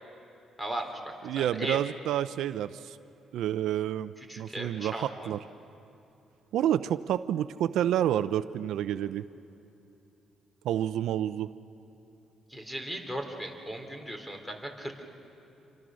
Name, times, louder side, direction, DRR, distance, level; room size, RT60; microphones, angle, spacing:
voice 1, 0.6-0.9 1.3-1.8 4.2-5.3 12.5-15.0, right 1 dB, 10° left, 4 dB, 3.3 m, -37 dB
voice 2, 1.2-3.0 3.3-5.4 6.5-9.3 10.6-11.5, right 11 dB, 80° right, 13 dB, 0.5 m, -29 dB
28.0 x 25.0 x 6.3 m, 2.8 s
cardioid pair, 90°, 0 cm